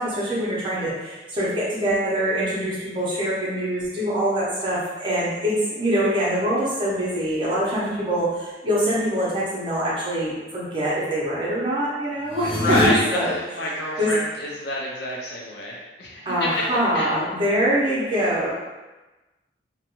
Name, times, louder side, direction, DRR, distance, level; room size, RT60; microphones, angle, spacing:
voice 1, 0.0-12.8 13.1-13.4 14.0-14.1 16.3-18.5, equal, 25° right, -8 dB, 0.7 m, -24 dB
sound 1, 12.3-12.9, left 1 dB, 5° left, 0.4 m, -24 dB
voice 2, 12.6-16.6 16.9-17.1, left 1 dB, 65° left, -3 dB, 0.4 m, -27 dB
2.5 x 2.2 x 2.9 m, 1.1 s
head